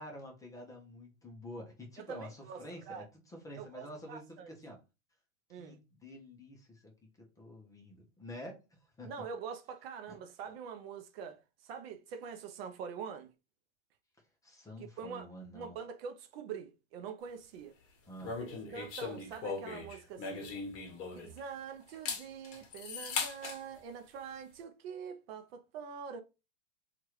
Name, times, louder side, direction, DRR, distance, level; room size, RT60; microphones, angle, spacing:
voice 1, 0.0-4.8 5.6-6.9 7.2-9.1 10.1-10.2 14.4-15.7 18.1-18.4, left 1 dB, 10° left, 0.6 m, -48 dB
voice 2, 2.0-3.0 3.5-4.5 5.5-5.8 9.0-13.3 14.8-15.3 15.5-17.8 18.4-20.6 21.1-26.2, right 6 dB, 50° right, 0.5 m, -45 dB
sound 1, 18.2-21.5 21.9-23.6, left 4 dB, 35° left, 1.0 m, -39 dB
2.9 x 2.5 x 3.0 m
hypercardioid pair, 125°, 39 cm